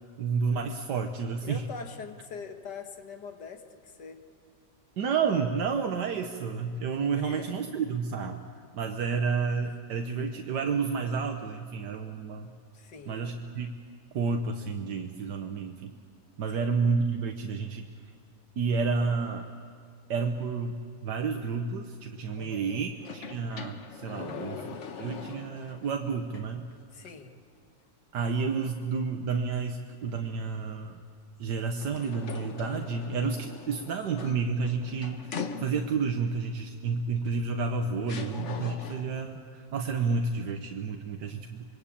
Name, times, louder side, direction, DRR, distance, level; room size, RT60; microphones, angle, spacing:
voice 1, 0.2-1.6 5.0-8.4 8.7-12.5 13.1-13.8 14.1-15.9 16.4-17.9 18.6-19.5 20.1-24.6 25.0-26.6 28.1-31.0 31.4-41.6, right 5 dB, 80° right, 4 dB, 1.7 m, -30 dB
voice 2, 1.4-4.2 7.1-7.5 12.7-13.3 16.5-16.7 22.4-22.8 24.2-24.7 26.9-27.3, left 5 dB, 80° left, 6 dB, 2.3 m, -43 dB
sound 1, 23.0-25.9 26.3-26.4 31.8-36.1 37.3-37.4 38.1-39.2, left 5 dB, 50° left, 1.3 m, -41 dB
26.0 x 23.0 x 8.6 m, 2.2 s
omnidirectional pair, 1.8 m